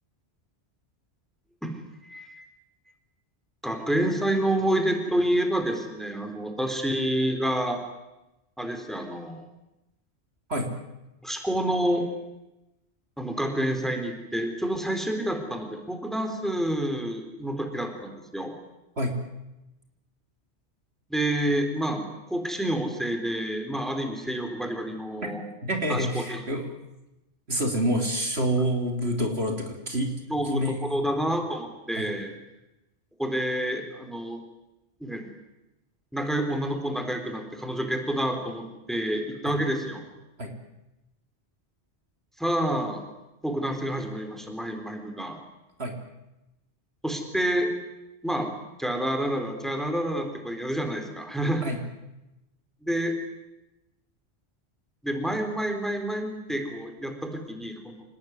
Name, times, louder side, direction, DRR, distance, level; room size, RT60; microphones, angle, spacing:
voice 1, 1.6-2.5 3.6-7.8 8.6-9.4 11.2-12.1 13.2-18.5 21.1-25.4 25.9-26.4 30.3-32.3 33.2-34.4 35.0-35.2 36.1-40.0 42.4-43.0 43.4-45.4 47.0-47.7 48.2-48.5 48.8-51.7 52.8-53.1 55.0-58.0, right 1 dB, ahead, 5 dB, 4.1 m, -28 dB
voice 2, 25.6-26.7 27.5-30.1 30.4-30.8 32.0-32.1 39.4-39.5 40.4-40.5 45.8-46.0 51.6-51.8, right 1 dB, 65° right, 3 dB, 3.9 m, -27 dB
27.5 x 19.5 x 9.7 m, 0.97 s
omnidirectional pair, 1.1 m